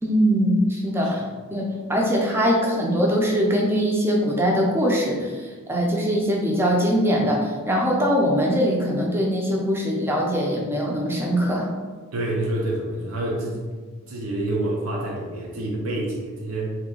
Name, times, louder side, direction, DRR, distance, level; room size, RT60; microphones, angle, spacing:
voice 1, 0.0-11.7, equal, 10° right, -2 dB, 0.5 m, -22 dB
voice 2, 12.1-13.6 14.1-16.7, right 1 dB, 80° right, -2 dB, 0.7 m, -27 dB
3.2 x 2.9 x 3.7 m, 1.4 s
head